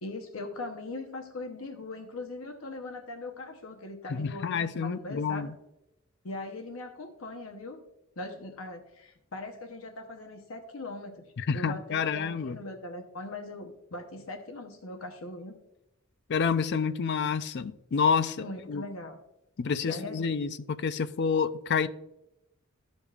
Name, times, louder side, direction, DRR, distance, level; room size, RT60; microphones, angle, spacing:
voice 1, 0.0-5.5 6.2-7.8 8.2-11.3 11.5-15.5 18.4-19.2 19.9-20.4, left 2 dB, 75° left, 5 dB, 0.9 m, -40 dB
voice 2, 4.1-5.5 11.4-12.6 16.3-18.9 19.6-21.9, left 6 dB, 55° left, 13 dB, 0.4 m, -29 dB
14.0 x 5.2 x 2.4 m, 0.89 s
head